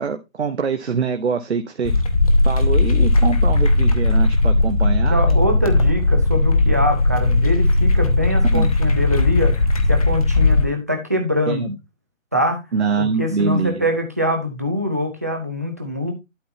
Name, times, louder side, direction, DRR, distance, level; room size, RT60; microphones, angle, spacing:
voice 1, 0.0-1.9 2.4-5.4 8.5-8.7 11.5-11.8 12.7-13.8, right 5 dB, 55° right, 7 dB, 1.0 m, -24 dB
sound 1, 1.8-10.7, left 2 dB, 25° left, 0.9 m, -17 dB
voice 2, 5.1-11.6 12.3-12.6 13.0-16.1, left 1 dB, 10° right, 3 dB, 0.6 m, -23 dB
11.5 x 3.9 x 4.1 m, 0.23 s
figure-of-eight pair, 155°, 40 cm